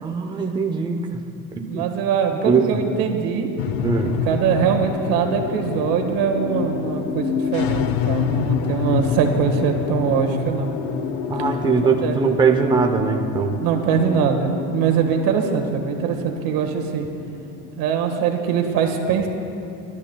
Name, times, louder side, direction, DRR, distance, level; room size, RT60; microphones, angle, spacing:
voice 1, 0.0-1.3 1.5-1.8 2.3-2.8 3.8-4.1 11.3-13.6, right 5 dB, 15° right, 4 dB, 0.6 m, -21 dB
voice 2, 1.7-3.5 4.2-10.7 12.0-12.2 13.6-17.0 17.8-19.3, right 7 dB, 90° right, 3 dB, 1.6 m, -22 dB
sound 1, 3.6-18.2, left 7 dB, 80° left, 0.7 m, -27 dB
23.0 x 13.0 x 2.3 m, 2.6 s
cardioid pair, 160°, 34 cm